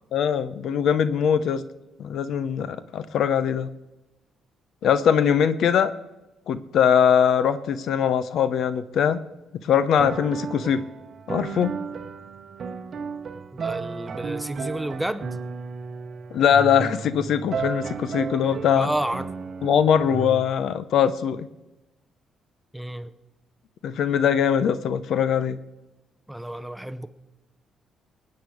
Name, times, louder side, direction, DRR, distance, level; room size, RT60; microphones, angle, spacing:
voice 1, 0.1-1.6 2.0-3.7 4.8-5.9 6.5-9.2 9.6-10.8 11.3-11.7 16.3-18.9 19.6-21.5 23.8-25.6, left 8 dB, 70° left, 14 dB, 0.7 m, -21 dB
sound 1, 10.0-20.4, right 5 dB, 50° right, 0.8 m, -34 dB
voice 2, 13.5-15.4 18.7-19.3 22.7-23.1 26.3-27.1, right 1 dB, 5° right, 12 dB, 0.7 m, -30 dB
19.0 x 8.8 x 4.9 m, 1.0 s
cardioid pair, 90°, 0 cm